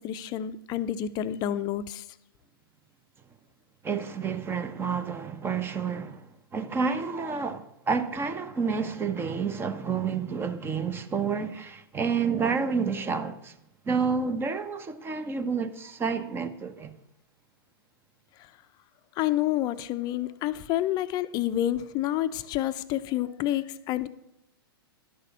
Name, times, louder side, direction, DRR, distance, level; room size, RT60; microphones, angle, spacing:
voice 1, 0.0-2.0 19.2-24.1, left 12 dB, 30° left, 0.7 m, -29 dB
voice 2, 3.8-6.3 6.5-13.6 13.8-16.9, right 5 dB, 20° right, 1.0 m, -29 dB
11.5 x 6.7 x 7.2 m
figure-of-eight pair, 105°, 13 cm